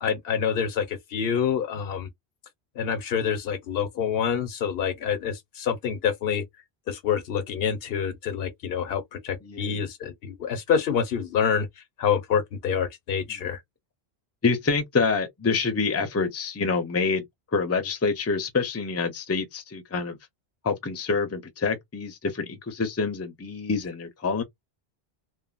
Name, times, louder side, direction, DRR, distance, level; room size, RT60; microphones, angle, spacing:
voice 1, 0.0-2.1 2.8-6.4 6.9-11.7 12.0-13.6, left 7 dB, 75° left, 0.9 m, -27 dB
voice 2, 9.4-9.8 13.3-13.4 14.4-17.2 17.5-20.2 20.6-24.4, left 4 dB, 20° left, 0.4 m, -27 dB
3.0 x 2.2 x 2.4 m
omnidirectional pair, 1.0 m